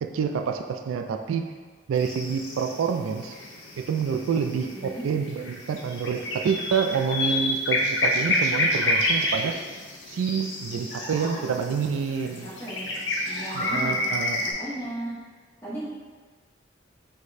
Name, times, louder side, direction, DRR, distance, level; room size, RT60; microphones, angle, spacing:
voice 1, 0.0-1.5 1.9-3.3 3.8-9.6 10.1-12.5 13.5-14.4, right 6 dB, 90° right, 5 dB, 0.3 m, -27 dB
sound 1, 1.9-14.5, left 1 dB, 65° left, 0.6 m, -29 dB
voice 2, 4.6-5.1 11.1-11.6 12.4-12.9 13.3-14.1 14.6-15.1 15.6-15.9, right 1 dB, 10° left, -10 dB, 1.3 m, -36 dB
sound 2, 8.7-8.9 10.9-11.4 13.1-13.8, equal, 45° left, 1.4 m, -35 dB
4.7 x 2.2 x 4.1 m, 1.5 s
head